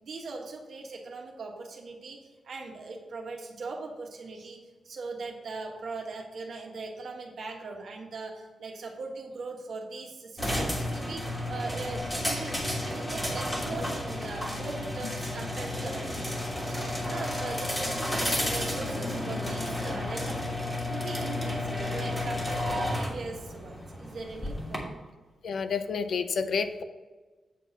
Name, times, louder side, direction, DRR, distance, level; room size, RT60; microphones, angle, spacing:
voice 1, 0.0-25.0, right 3 dB, 60° right, 1 dB, 1.4 m, -40 dB
sound 1, 10.4-24.8, left 1 dB, 10° left, 1.4 m, -32 dB
voice 2, 25.4-26.8, left 5 dB, 65° left, 9 dB, 0.5 m, -31 dB
8.3 x 4.2 x 5.9 m, 1.3 s
wide cardioid pair, 165°, 0 cm